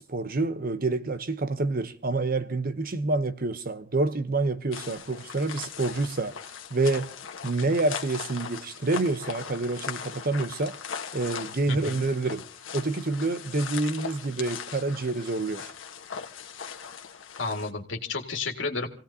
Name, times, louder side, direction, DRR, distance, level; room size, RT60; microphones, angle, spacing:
voice 1, 0.0-6.4 6.7-7.1 7.4-10.8 11.1-12.5 12.7-15.7, right 3 dB, 45° right, 0.8 m, -27 dB
sound 1, 4.7-17.7, left 7 dB, 85° left, 1.3 m, -39 dB
voice 2, 11.7-12.0 17.4-18.9, left 3 dB, 65° left, 2.0 m, -31 dB
27.5 x 17.0 x 2.8 m
head